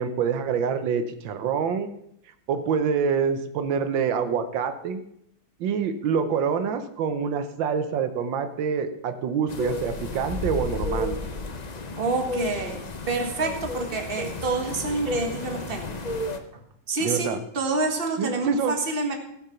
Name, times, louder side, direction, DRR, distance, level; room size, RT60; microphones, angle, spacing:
voice 1, 0.0-1.9 2.5-5.0 5.6-11.2 17.0-17.4 18.2-18.7, right 6 dB, 85° right, 9 dB, 1.6 m, -26 dB
sound 1, 9.5-16.4, left 2 dB, 70° left, 0.4 m, -32 dB
voice 2, 12.0-12.8 13.1-15.9 16.5-17.3 17.5-19.1, right 3 dB, 30° right, 3 dB, 1.6 m, -27 dB
16.0 x 6.0 x 5.7 m, 0.75 s
omnidirectional pair, 2.0 m